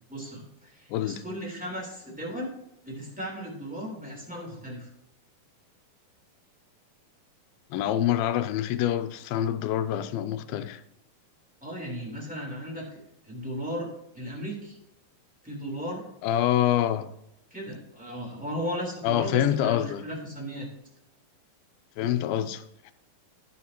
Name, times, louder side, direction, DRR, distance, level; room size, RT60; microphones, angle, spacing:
voice 1, 0.1-2.5 2.8-4.9 11.6-13.0 13.3-13.9 14.1-14.8 15.4-16.0 17.5-20.7, equal, ahead, 3.1 m, -36 dB
voice 2, 0.9-1.2 7.7-10.8 16.2-17.1 19.0-20.0 22.0-22.9, left 11 dB, 85° left, 2.5 m, -26 dB
19.0 x 7.7 x 2.9 m
omnidirectional pair, 4.2 m